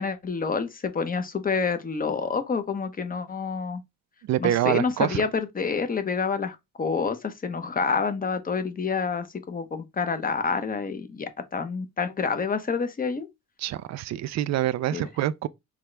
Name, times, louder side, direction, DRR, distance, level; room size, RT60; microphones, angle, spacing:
voice 1, 0.0-3.8 4.4-13.3 14.9-15.1, left 5 dB, 30° left, 0.9 m, -28 dB
voice 2, 4.3-5.2 13.6-15.5, right 13 dB, 60° right, 0.5 m, -26 dB
6.0 x 2.4 x 3.3 m
cardioid pair, 90°, 30 cm